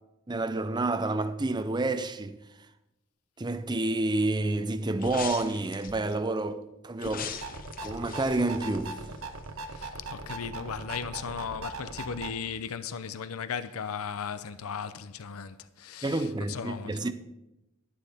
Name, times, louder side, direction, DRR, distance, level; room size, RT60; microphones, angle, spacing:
voice 1, 0.3-2.4 3.4-7.3 7.8-9.0 16.0-17.1, right 2 dB, 20° right, 0.5 m, -29 dB
sound 1, 5.0-6.1 7.0-9.4 9.8-9.9, left 6 dB, 40° left, 0.8 m, -40 dB
sound 2, 7.3-12.3, right 2 dB, 75° right, 1.0 m, -40 dB
voice 2, 9.7-17.1, left 6 dB, 80° left, 0.6 m, -37 dB
11.5 x 11.5 x 3.5 m
head